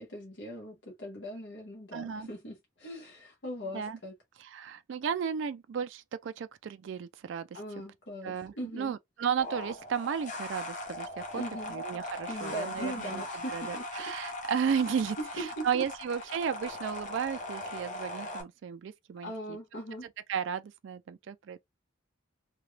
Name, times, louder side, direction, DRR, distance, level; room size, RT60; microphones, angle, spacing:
voice 1, 0.0-4.1 7.5-8.9 11.3-11.7 12.3-13.8 15.2-15.8 19.2-20.1, equal, 65° left, 1.2 m, -40 dB
voice 2, 1.9-2.3 3.7-4.0 4.4-7.6 8.2-11.4 11.7-13.2 13.5-19.3 20.3-21.6, right 7 dB, 65° right, 0.3 m, -34 dB
sound 1, 9.4-18.4, left 1 dB, 35° left, 0.8 m, -39 dB
2.8 x 2.3 x 3.2 m
head